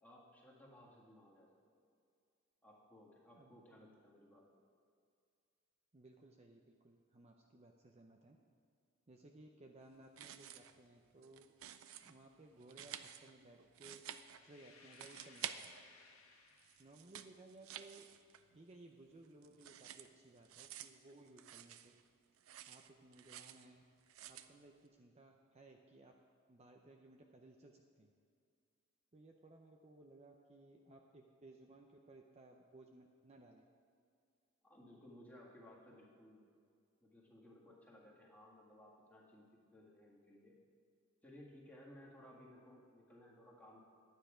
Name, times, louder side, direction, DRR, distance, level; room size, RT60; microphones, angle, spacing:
voice 1, 0.0-1.5 2.6-4.5 34.6-36.5 37.0-40.6 41.2-43.8, left 1 dB, 10° left, -4 dB, 1.8 m, -60 dB
voice 2, 5.9-8.4 9.1-11.5 12.0-14.0 14.4-15.7 16.8-18.1 18.5-21.9 22.7-23.8 24.3-26.1 26.5-28.1 29.1-33.6, right 2 dB, 30° right, 2 dB, 0.6 m, -60 dB
sound 1, 10.0-10.8 11.1-12.1 12.6-14.6 14.9-16.2 16.5-18.6 18.9-22.1 22.4-23.7 24.1-24.5, right 10 dB, 80° right, 0.5 m, -51 dB
sound 2, 14.3-17.1, left 4 dB, 90° left, 1.6 m, -63 dB
9.8 x 9.2 x 5.0 m, 2.3 s
head